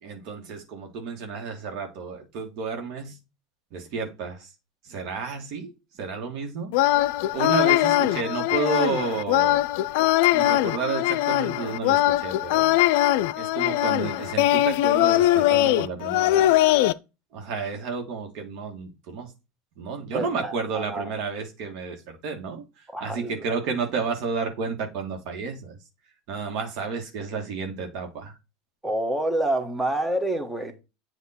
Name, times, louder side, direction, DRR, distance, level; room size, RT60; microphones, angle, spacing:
voice 1, 0.0-3.2 3.7-4.5 4.8-5.7 6.0-9.6 10.3-12.7 13.4-16.6 17.3-19.3 19.8-25.8 26.3-28.4, right 5 dB, 60° right, 1.6 m, -31 dB
sound 1, 6.7-16.9, left 15 dB, 70° left, 0.3 m, -21 dB
voice 2, 20.1-21.1 22.9-23.3 28.8-30.8, right 1 dB, 10° right, 1.1 m, -28 dB
7.8 x 2.9 x 4.2 m
supercardioid pair, 120°, 0 cm